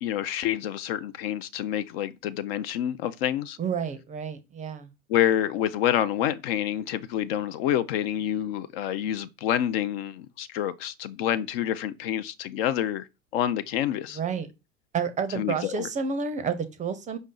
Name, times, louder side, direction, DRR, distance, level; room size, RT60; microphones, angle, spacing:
voice 1, 0.0-3.6 5.1-13.1 13.3-14.2 15.3-15.9, left 11 dB, 50° left, 0.5 m, -28 dB
voice 2, 3.6-4.9 14.1-14.5 14.9-17.2, right 6 dB, 20° right, 0.5 m, -30 dB
5.1 x 2.6 x 3.7 m
figure-of-eight pair, 80°, 38 cm